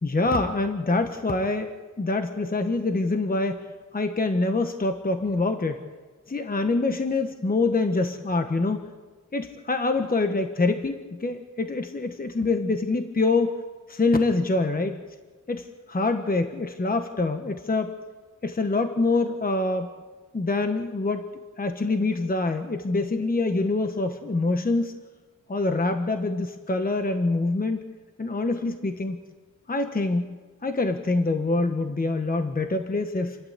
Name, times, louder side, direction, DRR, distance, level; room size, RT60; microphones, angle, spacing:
voice 1, 0.0-5.8 6.3-8.9 9.3-13.6 13.9-15.0 15.5-18.0 18.4-19.9 20.3-21.3 21.6-25.0 25.5-27.8 28.2-29.2 29.7-33.4, left 3 dB, 30° left, 6 dB, 1.2 m, -25 dB
29.0 x 12.0 x 8.3 m, 1.4 s
wide cardioid pair, 145°, 31 cm